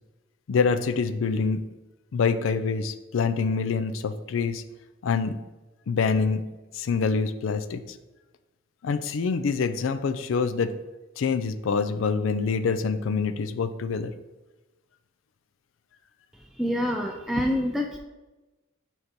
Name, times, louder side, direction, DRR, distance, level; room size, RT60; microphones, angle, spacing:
voice 1, 0.5-1.6 2.1-4.6 5.0-5.3 5.9-6.4 6.7-7.8 8.8-10.7 11.2-14.1, left 5 dB, 70° left, 10 dB, 0.4 m, -25 dB
voice 2, 16.6-18.0, equal, ahead, 1 dB, 0.3 m, -26 dB
4.5 x 4.2 x 5.1 m, 1.1 s
head